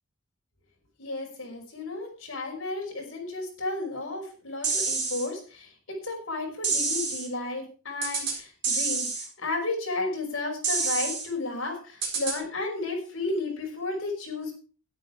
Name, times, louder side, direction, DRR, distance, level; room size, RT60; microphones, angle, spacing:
voice 1, 1.0-5.7 6.0-14.5, left 2 dB, 60° left, 0 dB, 5.4 m, -33 dB
sound 1, 4.6-5.3 6.6-7.3 8.0-8.4 8.6-9.3 10.6-11.3 12.0-12.4, right 4 dB, 50° right, 5.0 m, -28 dB
12.5 x 10.0 x 4.7 m, 0.38 s
head